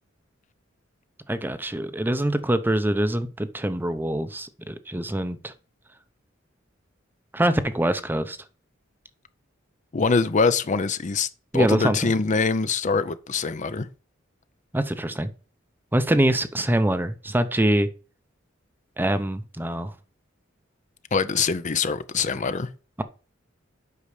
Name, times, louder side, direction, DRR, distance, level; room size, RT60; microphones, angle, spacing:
voice 1, 1.3-5.5 7.3-8.4 11.5-12.0 14.7-15.3 15.9-17.9 19.0-19.9, right 1 dB, 10° right, 0.6 m, -24 dB
voice 2, 9.9-11.3 11.5-13.9 21.1-22.7, left 4 dB, 40° left, 0.6 m, -23 dB
8.4 x 5.6 x 4.9 m
head